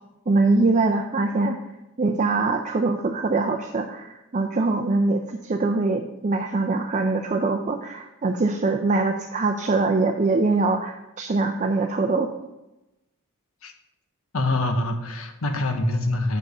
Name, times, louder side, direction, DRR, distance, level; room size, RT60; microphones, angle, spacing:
voice 1, 0.3-1.6 2.0-12.3, right 3 dB, 35° right, 4 dB, 0.5 m, -23 dB
voice 2, 14.3-16.4, left 2 dB, 80° left, 6 dB, 1.0 m, -25 dB
6.7 x 5.1 x 6.6 m, 0.95 s
head